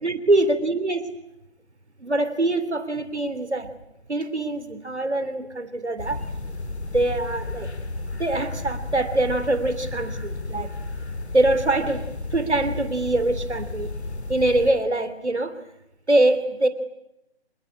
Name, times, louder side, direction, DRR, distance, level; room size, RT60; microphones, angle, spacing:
voice 1, 0.0-1.1 2.0-3.7 4.1-6.2 6.9-7.7 8.2-10.7 11.3-13.9 14.3-15.6 16.1-16.7, right 2 dB, 80° right, 11 dB, 3.0 m, -23 dB
sound 1, 6.0-14.7, left 2 dB, 75° left, 3.0 m, -33 dB
27.0 x 19.5 x 9.9 m, 0.88 s
figure-of-eight pair, 145°, 33 cm